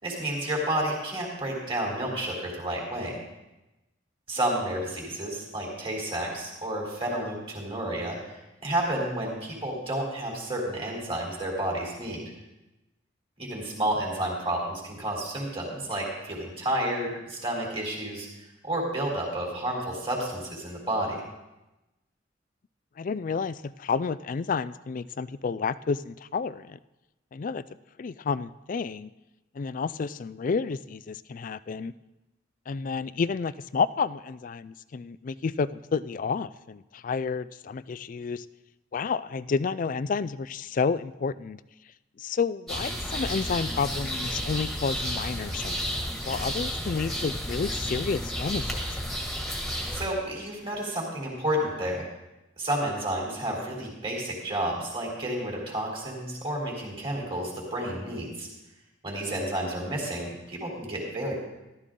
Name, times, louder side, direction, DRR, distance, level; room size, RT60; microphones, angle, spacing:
voice 1, 0.0-3.2 4.3-12.2 13.4-18.3 18.6-21.2 49.9-52.1 52.6-58.5 59.0-61.3, right 1 dB, 30° right, -2 dB, 3.6 m, -31 dB
voice 2, 23.0-26.8 27.3-27.6 28.0-29.1 29.5-31.9 32.7-38.5 38.9-41.6 42.2-45.9 46.3-48.9 59.6-59.7, left 5 dB, 45° left, 17 dB, 0.4 m, -30 dB
sound 1, 42.7-50.1, equal, ahead, 1.8 m, -32 dB
13.5 x 13.0 x 3.8 m, 1.0 s
head